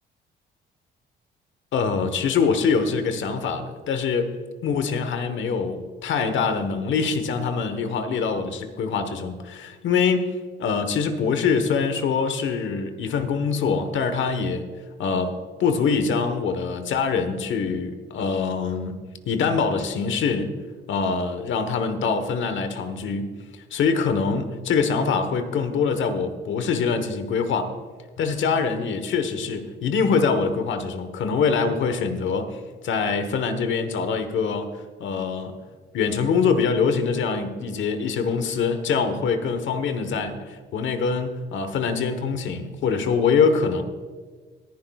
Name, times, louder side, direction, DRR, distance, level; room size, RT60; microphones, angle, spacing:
voice 1, 1.7-4.3 4.6-10.3 10.6-14.7 15.0-19.0 19.3-20.5 20.9-23.3 23.7-27.7 28.2-34.7 35.0-35.5 35.9-43.8, left 5 dB, 70° left, 9 dB, 1.2 m, -24 dB
20.5 x 10.5 x 2.4 m, 1.5 s
cardioid pair, 90°, 20 cm